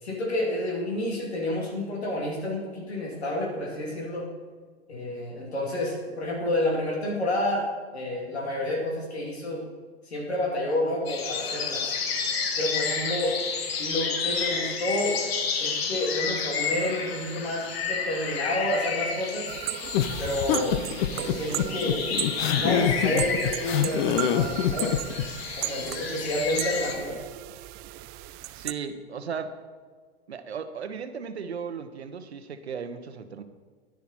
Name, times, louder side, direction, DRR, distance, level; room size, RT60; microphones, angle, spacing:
voice 1, 0.0-4.3 4.9-9.6 10.0-12.0 12.6-13.4 13.8-15.2 15.6-19.5 20.2-20.8 21.1-22.2 22.5-25.0 25.5-27.2, left 1 dB, 85° left, -2 dB, 2.7 m, -29 dB
sound 1, 11.1-27.0, left 5 dB, 70° left, 1.6 m, -31 dB
sound 2, 19.5-28.7, right 16 dB, 35° right, 0.4 m, -36 dB
sound 3, 19.9-25.3, left 10 dB, 50° left, 0.8 m, -25 dB
voice 2, 28.5-29.6 30.3-33.4, right 6 dB, 90° right, 9 dB, 1.0 m, -36 dB
10.5 x 9.6 x 4.2 m, 1.5 s
hypercardioid pair, 105°, 31 cm